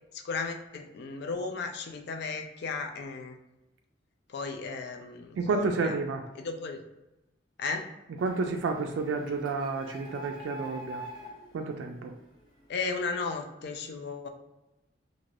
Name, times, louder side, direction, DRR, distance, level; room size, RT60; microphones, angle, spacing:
voice 1, 0.1-3.4 4.3-6.0 6.4-6.8 7.6-7.9 12.7-14.3, left 4 dB, 60° left, 5 dB, 0.4 m, -35 dB
voice 2, 5.4-6.2 8.2-11.0 11.5-12.1, right 4 dB, 80° right, 4 dB, 0.3 m, -30 dB
Printer, 8.2-12.8, equal, 25° left, 0.7 m, -45 dB
2.5 x 2.4 x 3.2 m, 0.98 s
head